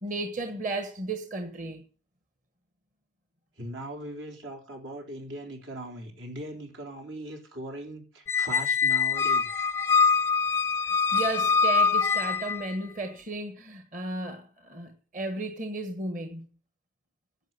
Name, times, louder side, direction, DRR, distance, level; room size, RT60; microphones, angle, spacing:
voice 1, 0.0-1.8 10.8-16.5, right 2 dB, 40° right, 1.4 m, -34 dB
voice 2, 3.6-9.7, right 1 dB, 80° right, 4.0 m, -39 dB
Squeak, 8.3-12.8, left 5 dB, 15° left, 0.5 m, -24 dB
11.0 x 7.6 x 8.4 m
head